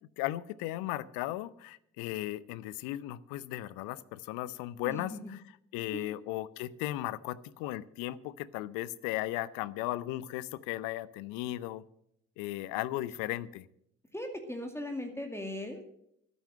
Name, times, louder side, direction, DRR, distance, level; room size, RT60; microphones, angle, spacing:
voice 1, 0.2-5.4 5.7-11.8 12.4-13.6, left 15 dB, 65° left, 18 dB, 0.8 m, -36 dB
voice 2, 4.9-5.2 5.9-6.2 14.1-15.9, left 1 dB, 5° left, 4 dB, 2.3 m, -39 dB
12.5 x 9.6 x 7.5 m, 0.73 s
figure-of-eight pair, 50°, 37 cm